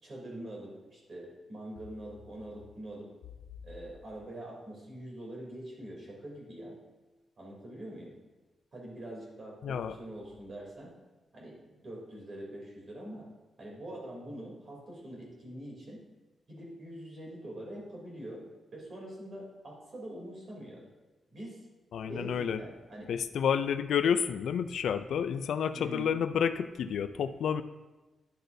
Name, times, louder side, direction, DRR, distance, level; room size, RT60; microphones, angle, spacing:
voice 1, 0.0-3.1 3.6-6.8 7.4-8.1 8.7-10.9 11.3-11.6 11.8-13.3 13.6-16.0 16.5-18.4 18.7-20.8 21.3-21.6 22.0-23.1 25.7-26.2, right 1 dB, 35° right, -3 dB, 3.1 m, -44 dB
voice 2, 9.6-9.9 21.9-22.6 23.1-27.6, left 7 dB, 75° left, 11 dB, 0.3 m, -30 dB
11.0 x 7.8 x 2.7 m, 1.2 s
wide cardioid pair, 175°, 0 cm